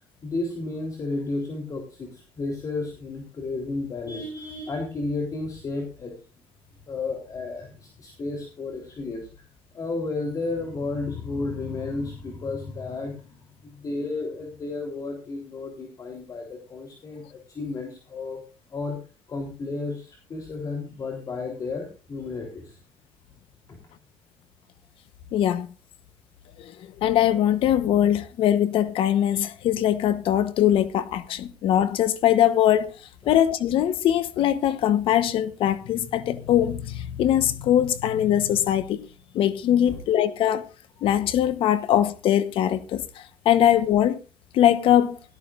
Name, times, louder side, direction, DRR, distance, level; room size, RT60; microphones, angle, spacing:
voice 1, 0.2-6.2 6.9-9.5 9.7-18.4 18.7-19.0 19.3-22.8 23.7-23.8 33.2-33.3 39.9-40.0, left 3 dB, 40° left, 3.6 m, -32 dB
voice 2, 25.3-25.7 26.6-26.7 27.0-32.9 33.3-39.0 39.3-40.7 41.0-44.2 44.5-45.2, left 11 dB, 65° left, 1.1 m, -21 dB
17.5 x 13.5 x 2.5 m
cardioid pair, 125°, 10 cm